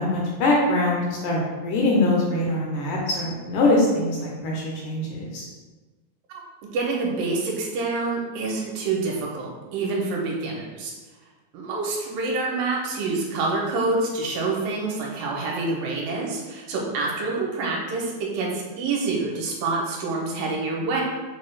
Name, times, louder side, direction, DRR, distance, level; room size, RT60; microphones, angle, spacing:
voice 1, 0.0-5.4, left 2 dB, 75° left, -3 dB, 2.0 m, -23 dB
voice 2, 6.7-10.9 11.5-21.0, right 3 dB, 80° right, -2 dB, 2.3 m, -27 dB
6.6 x 2.3 x 3.2 m, 1.2 s
omnidirectional pair, 4.1 m